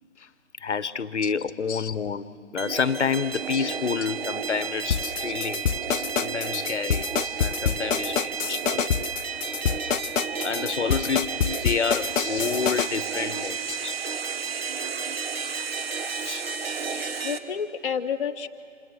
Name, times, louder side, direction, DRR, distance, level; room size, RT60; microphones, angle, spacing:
voice 1, 0.6-5.7 6.2-7.1 7.4-8.9 10.4-13.9 15.4-15.5 16.2-16.4 16.9-17.1, left 6 dB, 65° left, 16 dB, 1.1 m, -29 dB
sound 1, 2.6-17.4, right 6 dB, 50° right, 1.6 m, -32 dB
sound 2, 4.9-12.9, left 7 dB, 80° left, 0.6 m, -26 dB
voice 2, 17.2-18.5, left 7 dB, 45° left, 3 dB, 0.7 m, -32 dB
29.5 x 26.5 x 6.4 m, 2.6 s
figure-of-eight pair, 150°, 38 cm